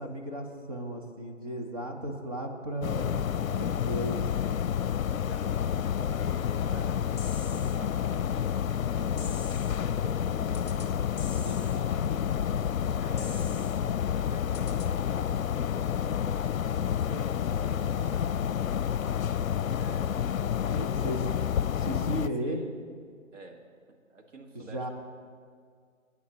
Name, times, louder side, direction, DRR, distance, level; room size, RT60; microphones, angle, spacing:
voice 1, 0.0-3.2 3.6-4.3 20.8-21.2 21.7-22.6 24.5-24.9, right 1 dB, 25° right, 2 dB, 1.1 m, -35 dB
sound 1, 2.8-22.3, left 8 dB, 85° left, 0.5 m, -29 dB
voice 2, 3.8-4.1 5.1-11.1 11.4-12.5 13.0-19.0 19.7-20.3 20.6-21.3 22.4-22.8 23.3-24.9, right 3 dB, 65° right, 3 dB, 1.8 m, -49 dB
sound 2, 7.2-7.8 9.2-9.8 10.5-10.9 11.2-11.8 13.2-13.8 14.5-14.9, left 6 dB, 30° left, 1.3 m, -45 dB
26.5 x 9.8 x 3.0 m, 2.1 s
hypercardioid pair, 170°, 40 cm